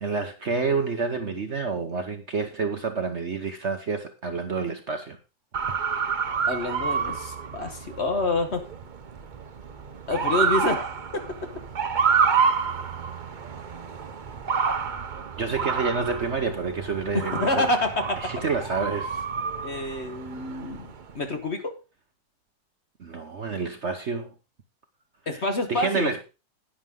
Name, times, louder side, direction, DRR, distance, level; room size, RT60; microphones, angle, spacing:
voice 1, 0.0-5.2 6.0-6.1 15.4-17.6 18.2-19.2 19.7-19.9 23.0-24.3 25.3-25.4 25.7-26.2, right 4 dB, 45° right, 1.1 m, -28 dB
Motor vehicle (road) / Siren, 5.5-21.1, right 6 dB, 85° right, 0.4 m, -29 dB
voice 2, 6.5-8.6 10.1-10.9 11.1-11.3 17.1-18.3 19.6-21.7 25.3-26.1, left 2 dB, 40° left, 1.4 m, -27 dB
10.5 x 9.6 x 3.7 m
omnidirectional pair, 2.0 m